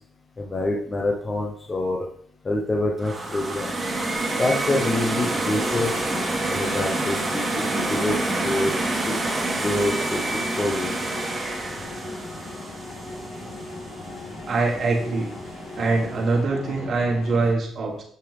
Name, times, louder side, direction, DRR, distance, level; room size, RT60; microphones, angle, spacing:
voice 1, 0.4-2.0 2.4-3.7 4.4-5.9 6.5-8.7 9.0-9.2 9.6-10.2 10.6-10.9, left 2 dB, 30° left, 0 dB, 0.9 m, -26 dB
sound 1, 3.0-14.0, right 2 dB, 25° right, 2.3 m, -27 dB
sound 2, 5.1-17.5, left 2 dB, 90° left, 3.6 m, -37 dB
voice 2, 14.5-15.3 15.7-18.0, right 3 dB, 45° right, -2 dB, 1.6 m, -23 dB
7.0 x 6.6 x 3.5 m, 0.63 s
cardioid pair, 90°, 0 cm